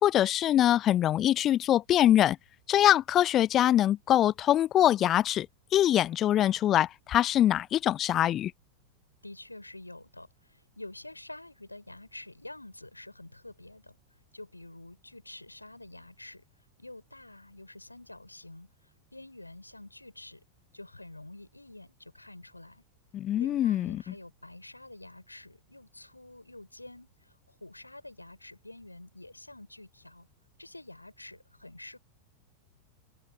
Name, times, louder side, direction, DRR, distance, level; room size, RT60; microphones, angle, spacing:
voice 1, 0.0-2.4 2.7-5.5 5.7-8.5 23.1-24.0, left 12 dB, 30° left, 0.5 m, -23 dB
voice 2, 9.2-14.0 14.3-16.5 16.8-20.4 20.7-22.8 23.3-30.3 30.6-32.0, left 2 dB, 85° left, 4.2 m, -48 dB
figure-of-eight pair, 90°, 0 cm